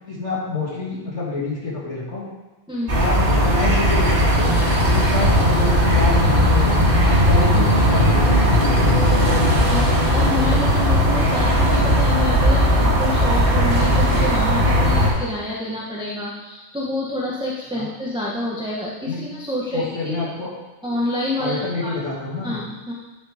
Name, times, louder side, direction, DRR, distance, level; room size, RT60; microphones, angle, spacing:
voice 1, 0.1-2.3 2.9-4.5 4.9-6.8 7.0-8.7 17.7-17.9 19.1-19.2 19.7-20.5 21.4-22.6, left 3 dB, 70° left, -5 dB, 2.7 m, -27 dB
voice 2, 2.7-3.0 9.7-20.3 20.8-22.0 22.4-22.9, left 1 dB, 5° right, -5 dB, 0.9 m, -28 dB
sound 1, 2.9-15.1, equal, 45° right, 2.2 m, -17 dB
10.5 x 5.4 x 4.9 m, 1.1 s
omnidirectional pair, 1.3 m